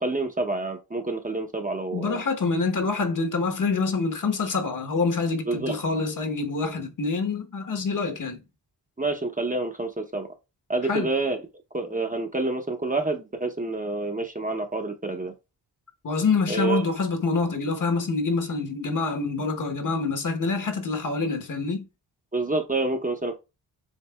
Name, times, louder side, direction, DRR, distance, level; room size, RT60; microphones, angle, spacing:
voice 1, 0.0-2.2 5.5-5.8 9.0-10.3 10.7-11.4 11.7-15.3 16.5-16.8 22.3-23.4, right 2 dB, 20° right, 0.7 m, -28 dB
voice 2, 1.9-8.4 10.8-11.1 16.0-21.9, left 4 dB, 50° left, 1.1 m, -26 dB
7.3 x 2.6 x 2.3 m
cardioid pair, 70°, 40 cm